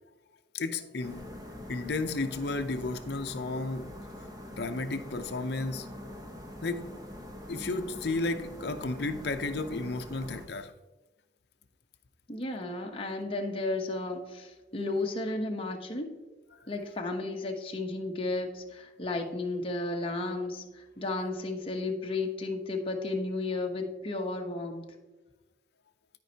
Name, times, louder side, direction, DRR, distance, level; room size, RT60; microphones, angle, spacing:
voice 1, 0.5-1.3 1.7-4.0 4.6-5.9 6.6-6.9 7.5-10.7 16.5-16.6, left 3 dB, 60° left, 0.6 m, -33 dB
sound 1, 1.0-10.5, left 1 dB, 20° right, 0.9 m, -44 dB
voice 2, 12.3-16.1 16.7-24.9, left 2 dB, 30° left, 0.9 m, -33 dB
12.5 x 5.2 x 2.8 m
head